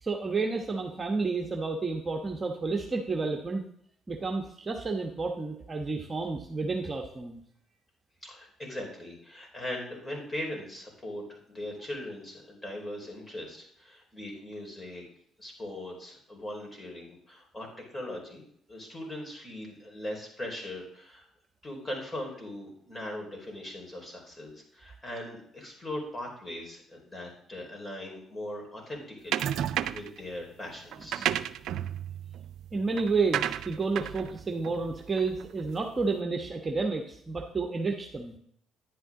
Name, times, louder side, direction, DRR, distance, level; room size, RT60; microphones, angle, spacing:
voice 1, 0.0-3.6 4.1-7.4 32.7-38.4, right 4 dB, 30° right, 3 dB, 1.1 m, -30 dB
voice 2, 8.2-15.0 15.4-18.4 18.7-21.2 21.6-29.5 29.9-31.3, left 1 dB, 20° left, -1 dB, 4.6 m, -40 dB
sound 1, 29.3-30.2 30.9-35.6, right 11 dB, 75° right, 0.4 m, -33 dB
10.5 x 8.7 x 3.8 m, 0.66 s
supercardioid pair, 70°, 0 cm